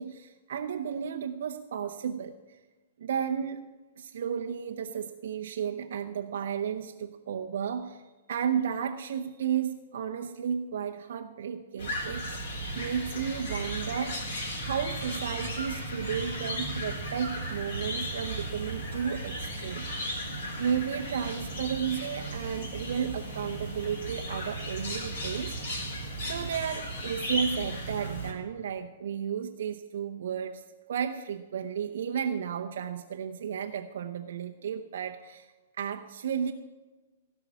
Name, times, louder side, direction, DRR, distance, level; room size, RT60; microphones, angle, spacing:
voice 1, 0.0-2.6 3.0-3.7 4.0-8.0 8.3-12.4 12.7-14.3 14.6-19.9 20.6-25.6 26.2-30.6 30.9-35.5 35.8-36.5, right 7 dB, 60° right, 4 dB, 0.8 m, -33 dB
sound 1, 11.8-28.3, right 1 dB, 65° left, 3.8 m, -35 dB
17.0 x 6.0 x 9.9 m, 1.2 s
figure-of-eight pair, 110°, 0 cm